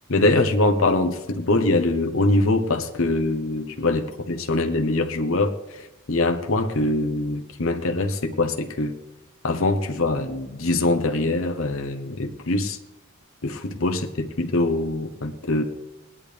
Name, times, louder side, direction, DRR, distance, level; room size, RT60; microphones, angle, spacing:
voice 1, 0.1-9.0 9.4-12.8 13.4-15.6, left 2 dB, 70° left, 4 dB, 1.1 m, -23 dB
19.0 x 11.0 x 3.5 m, 1.0 s
head